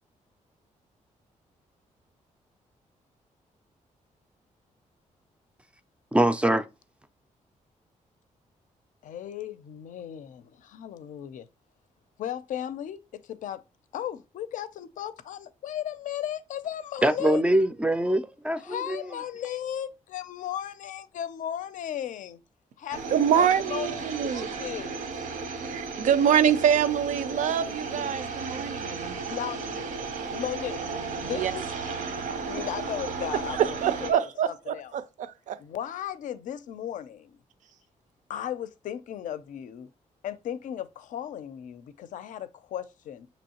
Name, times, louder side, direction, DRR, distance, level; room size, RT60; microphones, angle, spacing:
voice 1, 6.1-6.6 17.0-19.0, right 1 dB, 10° right, 0.3 m, -23 dB
voice 2, 9.0-11.5 12.2-13.6 13.9-17.4 18.6-22.4 22.8-24.9 29.3-29.6 30.3-31.7 32.5-34.9 35.6-37.4 38.3-39.9 40.2-43.3, left 10 dB, 75° left, 0.5 m, -36 dB
sound 1, 22.9-34.1, right 4 dB, 85° right, 0.9 m, -34 dB
voice 3, 23.1-24.5 25.6-29.2 31.2-31.5 33.5-35.6, right 9 dB, 70° right, 0.5 m, -25 dB
6.2 x 3.0 x 2.9 m
wide cardioid pair, 155°, 13 cm